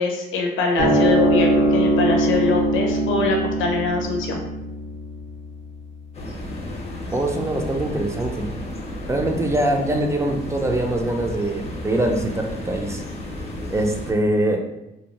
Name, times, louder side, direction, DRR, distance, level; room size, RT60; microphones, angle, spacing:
voice 1, 0.0-4.4, left 3 dB, 80° left, 1 dB, 0.6 m, -23 dB
sound 1, 0.8-7.4, right 1 dB, 80° right, 0.7 m, -22 dB
sound 2, 6.1-14.1, left 1 dB, 30° left, 0.6 m, -33 dB
voice 2, 7.1-8.5 9.1-13.0 13.7-14.7, right 1 dB, 15° right, 2 dB, 0.4 m, -23 dB
2.6 x 2.0 x 2.9 m, 0.89 s
cardioid pair, 90°, 20 cm